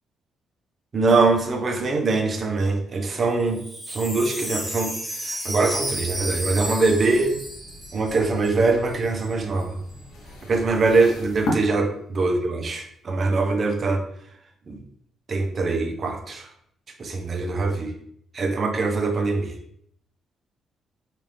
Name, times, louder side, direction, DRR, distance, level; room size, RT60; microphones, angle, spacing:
voice 1, 0.9-3.6 3.9-4.9 5.2-7.4 7.9-9.8 10.5-14.0 14.7-14.8 15.3-16.5 17.0-17.9 18.3-19.6, right 3 dB, 45° right, 4 dB, 0.7 m, -23 dB
Wind chime, 3.4-8.6 8.9-9.0 9.2-9.6, right 1 dB, 5° right, 0.9 m, -33 dB
sound 1, 5.7-11.5, left 2 dB, 85° left, 0.9 m, -39 dB
4.4 x 2.5 x 3.3 m, 0.70 s
cardioid pair, 90°, 0 cm